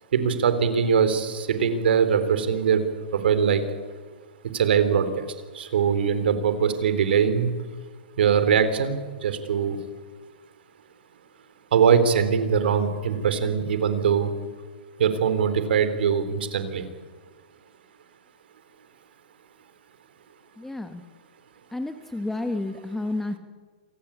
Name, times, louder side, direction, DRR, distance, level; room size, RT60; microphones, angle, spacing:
voice 1, 0.1-2.8 3.1-3.6 4.5-5.3 5.5-7.5 8.2-9.8 11.7-14.3 15.0-16.9, right 7 dB, 75° right, 11 dB, 3.8 m, -22 dB
voice 2, 20.6-21.0 21.7-23.4, left 2 dB, 5° left, 7 dB, 1.4 m, -30 dB
27.5 x 18.5 x 8.8 m, 1.5 s
hypercardioid pair, 145°, 6 cm